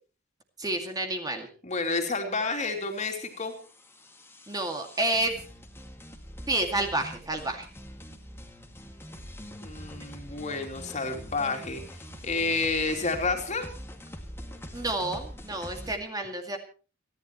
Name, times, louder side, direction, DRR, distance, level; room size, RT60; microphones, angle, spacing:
voice 1, 0.6-1.5 4.5-5.4 6.5-7.7 14.7-16.6, right 2 dB, 20° right, 4 dB, 2.2 m, -29 dB
voice 2, 1.6-3.5 9.6-11.8 12.2-13.7, left 3 dB, 35° left, 4 dB, 3.0 m, -30 dB
sound 1, 2.8-16.0, equal, 10° left, 2.2 m, -44 dB
29.5 x 11.5 x 3.1 m, 0.36 s
head